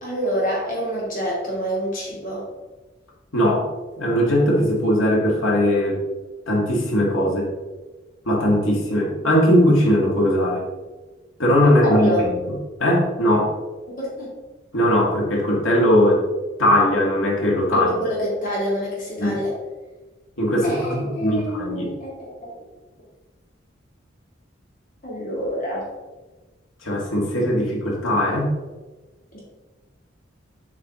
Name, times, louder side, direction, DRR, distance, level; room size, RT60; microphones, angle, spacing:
voice 1, 0.0-2.5 11.6-12.3 14.0-14.3 17.7-19.5 20.6-22.5 25.0-25.8 29.3-29.4, equal, 45° left, -5 dB, 2.1 m, -26 dB
voice 2, 3.3-3.7 4.0-6.0 6.5-7.5 8.3-10.6 11.4-13.5 14.7-16.2 16.6-17.9 19.2-19.4 20.4-21.9 26.8-28.5, equal, 90° left, -2 dB, 1.8 m, -19 dB
7.2 x 4.5 x 3.5 m, 1.2 s
head